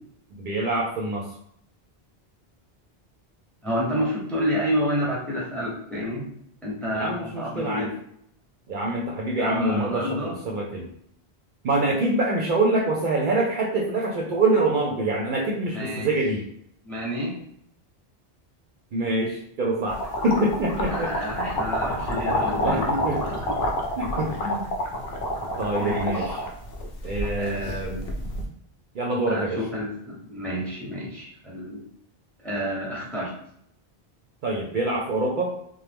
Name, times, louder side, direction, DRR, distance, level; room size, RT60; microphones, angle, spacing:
voice 1, 0.4-1.2 6.9-7.9 8.7-10.2 10.4-10.9 11.6-16.4 18.9-21.1 22.1-22.2 22.6-23.2 24.0-24.6 25.6-26.3 27.0-28.0 28.9-29.6 34.4-35.5, right 2 dB, 60° right, -2 dB, 0.6 m, -25 dB
voice 2, 3.6-6.3 6.6-7.9 9.4-10.4 15.7-16.1 16.8-17.4 20.9-22.9 23.5-23.6 25.7-26.5 27.4-27.8 29.3-31.8 32.4-33.3, equal, ahead, -4 dB, 0.8 m, -29 dB
sound 1, 19.9-28.4, left 1 dB, 70° left, 0.8 m, -28 dB
3.0 x 2.0 x 3.3 m, 0.70 s
omnidirectional pair, 1.0 m